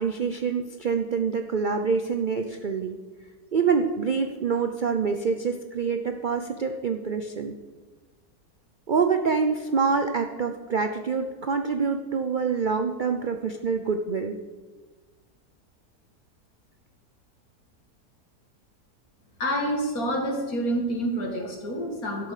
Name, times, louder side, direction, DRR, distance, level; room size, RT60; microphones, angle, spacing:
voice 1, 0.0-3.0 3.5-7.5 8.9-14.4, right 5 dB, 85° right, 6 dB, 0.4 m, -26 dB
voice 2, 19.4-22.3, right 1 dB, 60° left, 1 dB, 2.6 m, -28 dB
12.0 x 8.1 x 6.6 m, 1.3 s
omnidirectional pair, 1.7 m